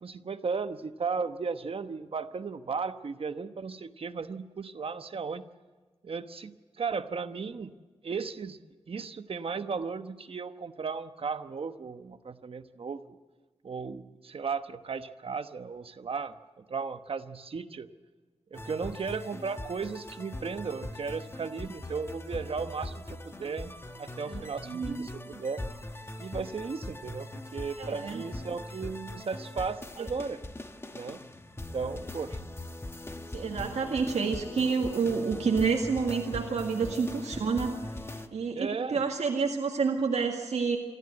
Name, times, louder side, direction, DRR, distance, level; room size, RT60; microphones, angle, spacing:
voice 1, 0.0-5.4 6.0-7.7 8.0-8.6 8.9-13.2 13.6-16.3 16.7-17.9 18.5-25.6 26.2-30.4 30.9-31.2 31.7-32.4 35.3-35.4 38.5-39.0, right 5 dB, 55° right, 10 dB, 1.0 m, -35 dB
sound 1, 18.5-38.3, left 1 dB, 20° left, 1.1 m, -41 dB
voice 2, 24.2-25.1 27.8-28.2 30.0-30.1 33.3-37.8 38.3-40.8, right 5 dB, 90° right, 1 dB, 1.9 m, -29 dB
26.5 x 14.0 x 7.9 m, 1.4 s
wide cardioid pair, 135°, 11 cm